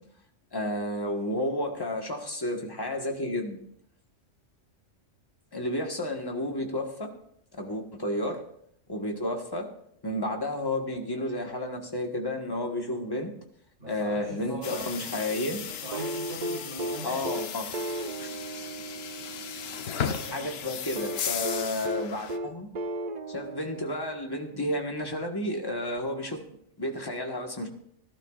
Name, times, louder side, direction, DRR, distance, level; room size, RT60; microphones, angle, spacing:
voice 1, 0.5-3.6 5.5-7.1 7.6-8.4 8.9-9.7 10.0-13.3 13.9-15.6 17.0-17.7 18.2-18.7 20.3-22.7 23.3-26.4 26.8-27.7, left 1 dB, 20° left, 2 dB, 1.4 m, -31 dB
voice 2, 13.8-15.0 15.6-17.5 20.0-20.5, right 1 dB, 70° right, -7 dB, 4.1 m, -41 dB
sound 1, 14.6-22.4, left 8 dB, 60° left, 0.9 m, -36 dB
sound 2, 15.9-20.0 21.0-24.5 26.0-26.1, right 2 dB, 50° right, 0.6 m, -35 dB
17.5 x 12.0 x 2.5 m, 0.69 s
omnidirectional pair, 1.3 m